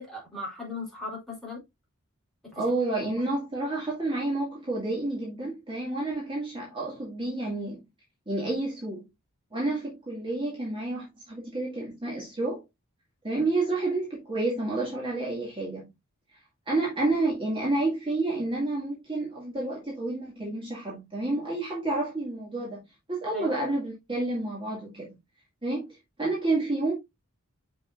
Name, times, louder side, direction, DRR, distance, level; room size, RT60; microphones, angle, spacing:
voice 1, 0.0-1.6 2.4-2.7 23.3-23.5, left 2 dB, ahead, 3.5 m, -38 dB
voice 2, 2.5-7.8 8.3-9.0 9.5-12.6 13.2-15.9 16.7-22.8 23.1-25.1 25.6-26.9, right 2 dB, 25° right, 2.1 m, -29 dB
6.8 x 5.6 x 2.5 m
head